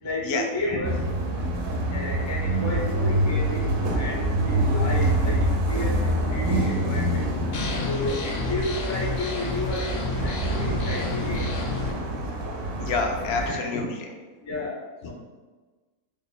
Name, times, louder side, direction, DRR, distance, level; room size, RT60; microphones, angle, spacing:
voice 1, 0.0-1.0 1.9-7.3 7.9-11.5 13.4-13.8 14.4-15.1, left 2 dB, 25° left, -4 dB, 0.4 m, -32 dB
sound 1, 0.8-13.5, right 1 dB, 65° right, 0.9 m, -26 dB
voice 2, 5.9-6.3 7.3-8.1 10.5-14.1 15.0-15.1, left 4 dB, 90° left, 2 dB, 1.1 m, -32 dB
sound 2, 7.5-11.9, left 4 dB, 65° left, 1.0 m, -31 dB
3.3 x 2.1 x 3.9 m, 1.3 s
omnidirectional pair, 1.5 m